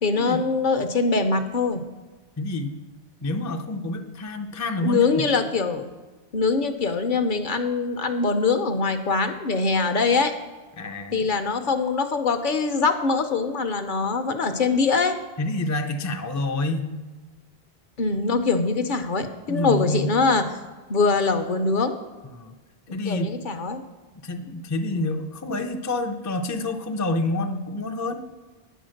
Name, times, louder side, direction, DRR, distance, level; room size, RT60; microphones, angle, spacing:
voice 1, 0.0-1.8 4.8-5.9 6.3-10.3 11.1-15.2 18.0-20.6 20.9-22.0 23.0-23.8, left 4 dB, 55° left, 8 dB, 0.7 m, -23 dB
voice 2, 2.4-2.8 3.2-5.1 10.8-11.3 15.4-16.9 19.5-20.1 22.3-22.5 22.9-23.4 24.2-28.2, left 2 dB, 30° left, 5 dB, 0.3 m, -28 dB
9.1 x 4.3 x 6.4 m, 1.3 s
omnidirectional pair, 1.0 m